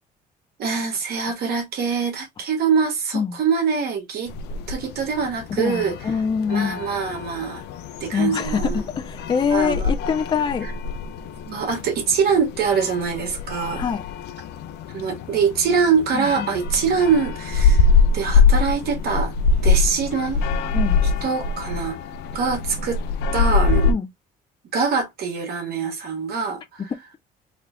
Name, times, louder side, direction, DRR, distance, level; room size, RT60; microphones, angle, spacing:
voice 1, 0.6-4.3 4.7-6.0 6.5-7.6 8.0-8.8 9.5-9.9 10.6-10.7 11.5-13.8 14.9-17.9 18.1-19.3 19.6-20.4 21.2-22.0 22.3-23.0 23.3-23.9 24.7-26.9, right 6 dB, 70° right, 1.7 m, -24 dB
sound 1, 4.3-23.9, left 4 dB, 85° left, 0.5 m, -24 dB
voice 2, 5.5-6.8 8.1-10.7 13.8-14.0 16.1-16.5 20.7-21.0 23.9-24.1 26.9-27.0, left 6 dB, 25° left, 0.5 m, -24 dB
3.7 x 2.3 x 3.2 m
cardioid pair, 110°, 17 cm